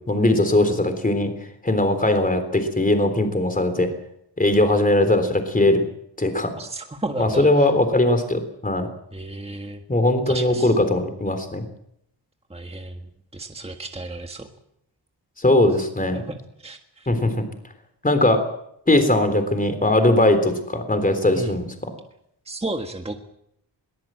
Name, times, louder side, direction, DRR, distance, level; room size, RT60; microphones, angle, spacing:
voice 1, 0.1-1.3 1.6-3.9 4.4-5.8 6.2-6.5 7.2-8.9 9.9-11.6 15.4-16.2 17.1-17.4 18.0-18.4 18.9-21.7, left 1 dB, 20° left, 8 dB, 3.5 m, -19 dB
voice 2, 6.6-7.7 9.1-9.8 10.3-10.7 12.5-14.5 16.1-17.1 21.3-21.5 22.4-23.2, right 2 dB, 15° right, 5 dB, 1.6 m, -33 dB
22.0 x 19.5 x 7.7 m, 0.74 s
wide cardioid pair, 135°, 44 cm